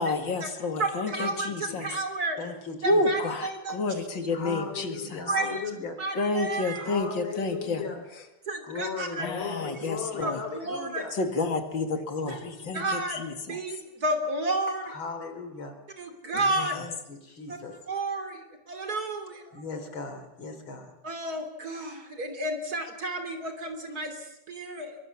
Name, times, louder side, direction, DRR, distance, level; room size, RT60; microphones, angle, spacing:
voice 1, 0.0-1.9 2.8-5.2 6.2-7.8 9.2-10.4 11.2-12.4 12.7-13.6 16.5-16.7, left 2 dB, 70° left, 7 dB, 2.9 m, -29 dB
voice 2, 0.8-2.4 2.8-4.1 4.4-4.5 5.3-5.6 6.0-6.9 8.5-9.3 10.2-11.0 12.3-12.4 12.7-13.2 13.5-14.9 16.0-16.8 17.5-17.6 17.9-19.6 21.0-25.0, right 2 dB, 50° right, 7 dB, 3.6 m, -32 dB
voice 3, 2.4-3.2 4.3-6.3 6.7-8.1 8.7-11.1 11.9-12.8 14.9-15.8 16.8-17.8 19.5-20.9, left 4 dB, 90° left, 7 dB, 4.1 m, -37 dB
23.5 x 23.0 x 7.3 m, 0.87 s
omnidirectional pair, 2.1 m